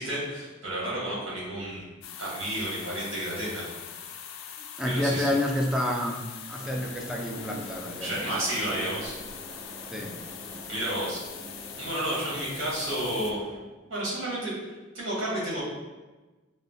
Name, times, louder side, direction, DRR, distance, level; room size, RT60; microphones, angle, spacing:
voice 1, 0.0-1.8 2.2-3.7 4.8-5.2 8.0-9.1 10.7-11.2 11.8-13.4 13.9-14.5 14.9-15.6, right 1 dB, 70° right, -5 dB, 1.3 m, -31 dB
sound 1, 2.0-13.3, left 8 dB, 75° left, 0.3 m, -42 dB
voice 2, 4.8-9.0 9.9-10.2, left 1 dB, 5° right, -1 dB, 0.3 m, -30 dB
sound 2, 6.6-13.6, equal, 25° right, 0.8 m, -46 dB
5.3 x 2.1 x 2.7 m, 1.2 s
head